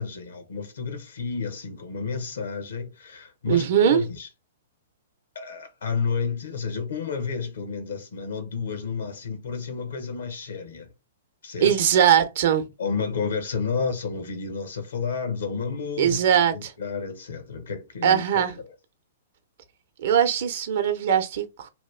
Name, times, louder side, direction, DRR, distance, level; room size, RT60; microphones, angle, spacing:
voice 1, 0.0-4.3 5.3-10.9 11.4-11.7 12.8-18.7, left 5 dB, 75° left, 0.9 m, -31 dB
voice 2, 3.5-4.0 11.6-12.7 16.0-16.7 18.0-18.6 20.0-21.7, right 9 dB, 60° right, 0.7 m, -21 dB
2.9 x 2.3 x 3.2 m
hypercardioid pair, 120°, 0 cm